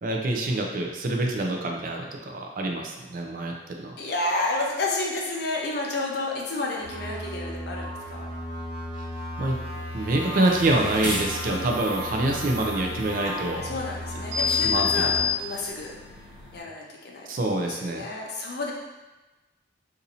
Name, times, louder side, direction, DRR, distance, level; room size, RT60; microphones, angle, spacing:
voice 1, 0.0-4.0 9.4-9.6 9.9-13.6 14.6-15.1 17.3-18.1, right 2 dB, 45° right, 1 dB, 0.4 m, -26 dB
voice 2, 4.0-8.3 11.5-11.7 13.2-13.3 13.6-15.9 16.5-17.3 17.7-18.7, left 2 dB, 55° left, -2 dB, 0.6 m, -30 dB
sound 1, 6.8-15.2, equal, 20° right, 1.2 m, -35 dB
sound 2, 10.4-16.6, left 5 dB, 70° right, 1.1 m, -31 dB
2.7 x 2.6 x 4.1 m, 1.1 s
head